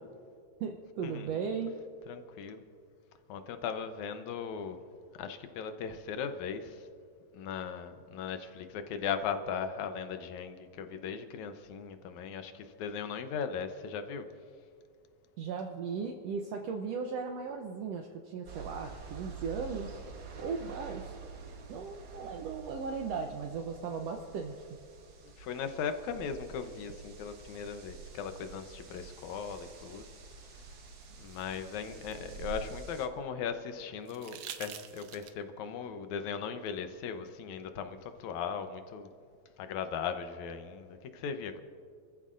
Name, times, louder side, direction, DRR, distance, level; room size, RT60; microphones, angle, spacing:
voice 1, 0.6-1.7 15.4-20.0 20.4-21.1 21.7-24.7, right 5 dB, 70° right, 2 dB, 1.7 m, -37 dB
voice 2, 2.1-2.6 3.3-4.8 5.1-6.9 7.3-14.3 25.4-30.0 31.2-39.1 39.6-41.6, left 6 dB, 80° left, 8 dB, 2.2 m, -38 dB
sound 1, 18.4-33.1, right 6 dB, 55° right, 1.1 m, -47 dB
sound 2, 30.9-33.1 34.0-35.6 37.3-37.4, right 10 dB, 85° right, 1.2 m, -48 dB
29.0 x 14.0 x 2.5 m, 2.2 s
omnidirectional pair, 3.3 m